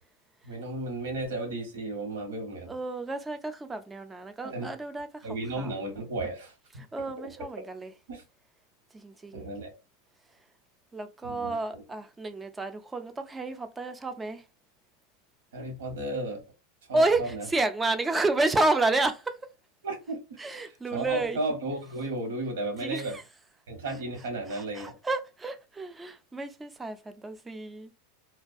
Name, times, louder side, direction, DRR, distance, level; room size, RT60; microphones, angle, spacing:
voice 1, 0.4-2.7 4.4-4.7 5.2-6.5 8.1-8.2 9.3-9.7 11.2-11.8 15.5-16.4 16.9-17.5 19.8-20.2 20.5-23.2 23.7-25.0, right 2 dB, 90° right, 1.1 m, -34 dB
voice 2, 2.7-5.7 6.9-7.9 8.9-9.5 10.9-14.4 16.9-19.4 20.4-21.4 22.8-23.2 24.5-27.9, right 2 dB, 10° right, 0.3 m, -30 dB
2.3 x 2.2 x 2.5 m
supercardioid pair, 130°, 0 cm